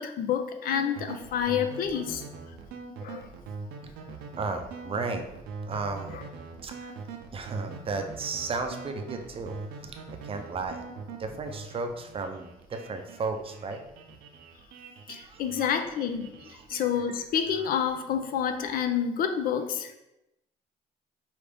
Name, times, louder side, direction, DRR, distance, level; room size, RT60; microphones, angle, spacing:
voice 1, 0.0-2.2 3.0-3.3 6.1-6.2 15.1-19.9, left 8 dB, 60° left, 7 dB, 0.5 m, -29 dB
sound 1, 0.7-18.8, right 5 dB, 80° right, 0.6 m, -42 dB
voice 2, 4.4-5.2 5.7-6.2 6.6-6.9 7.3-9.6 9.8-10.8 11.2-13.8 15.2-15.4 16.5-16.6, right 4 dB, 35° right, 6 dB, 0.5 m, -34 dB
5.0 x 2.5 x 3.4 m, 0.88 s
cardioid pair, 110°, 17 cm